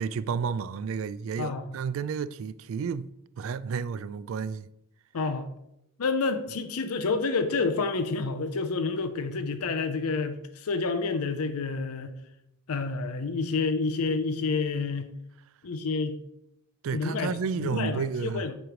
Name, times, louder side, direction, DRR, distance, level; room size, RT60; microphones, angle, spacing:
voice 1, 0.0-3.1 3.4-4.7 16.8-18.5, right 6 dB, 65° right, 0.3 m, -31 dB
voice 2, 5.1-5.5 6.0-12.1 12.7-15.1 15.6-16.2 16.9-17.3 17.6-18.6, left 4 dB, 85° left, 0.6 m, -29 dB
7.7 x 3.1 x 5.0 m
head